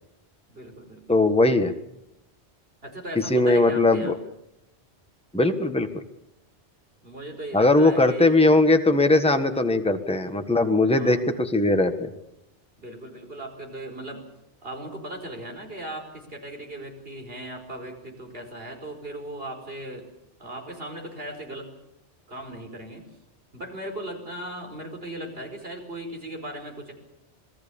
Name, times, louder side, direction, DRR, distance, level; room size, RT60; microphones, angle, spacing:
voice 1, 0.5-1.0 2.8-4.1 7.0-8.4 10.9-11.3 12.8-14.2 14.6-20.0 20.4-21.7 22.3-23.1 23.5-26.9, right 1 dB, 55° right, 4 dB, 5.2 m, -37 dB
voice 2, 1.1-1.7 3.1-4.2 5.3-6.0 7.5-11.9, left 2 dB, 5° left, 6 dB, 1.5 m, -20 dB
27.0 x 20.0 x 7.1 m, 0.84 s
omnidirectional pair, 1.2 m